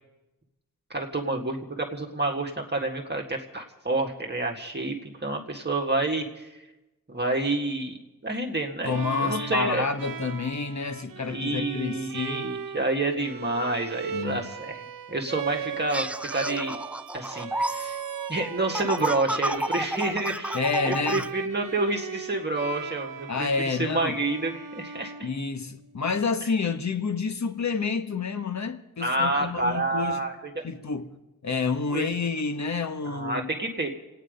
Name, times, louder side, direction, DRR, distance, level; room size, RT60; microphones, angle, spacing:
voice 1, 0.9-6.5 7.1-8.0 8.2-8.9 9.2-9.9 11.3-14.8 15.1-16.8 17.1-18.0 18.3-25.3 29.0-30.6 31.9-32.1 33.0-33.9, right 2 dB, 30° right, 1.7 m, -29 dB
voice 2, 8.8-12.5 14.1-14.5 20.5-21.3 23.3-24.2 25.2-30.2 30.6-31.2 31.4-33.5, left 4 dB, 50° left, 1.2 m, -29 dB
Bowed string instrument, 8.9-25.8, right 7 dB, 70° right, 0.8 m, -38 dB
sound 1, 15.9-21.3, right 1 dB, 5° right, 0.5 m, -31 dB
28.0 x 9.3 x 5.2 m
wide cardioid pair, 75°, 35 cm